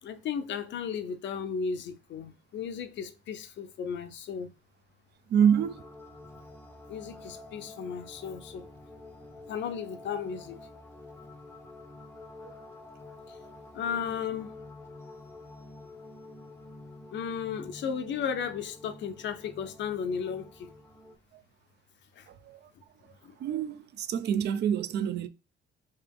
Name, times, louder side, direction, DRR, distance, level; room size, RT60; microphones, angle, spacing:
voice 1, 0.0-4.5 6.9-8.7 9.5-10.6 13.3-13.4 13.7-14.5 17.1-20.7 22.2-22.3 23.2-23.3, left 7 dB, 65° left, 0.6 m, -35 dB
voice 2, 5.3-5.8 12.4-12.5 21.3-21.4 22.5-22.6 23.4-25.3, right 8 dB, 60° right, 0.4 m, -27 dB
sound 1, 5.4-21.2, left 2 dB, 10° left, 0.6 m, -48 dB
3.3 x 2.9 x 3.4 m
cardioid pair, 90°, 20 cm